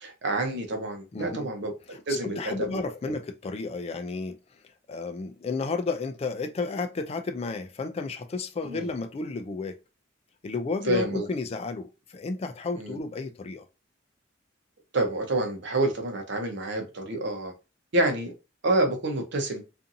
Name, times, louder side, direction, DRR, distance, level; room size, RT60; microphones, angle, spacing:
voice 1, 0.0-1.7 2.1-2.7 8.7-8.9 10.8-11.3 12.7-13.0 14.9-17.5 17.9-18.3 18.6-19.6, right 2 dB, 65° right, 0.7 m, -28 dB
voice 2, 1.1-1.5 1.9-4.4 4.9-9.8 10.4-13.6, left 3 dB, 30° left, 0.3 m, -32 dB
2.6 x 2.5 x 2.6 m
head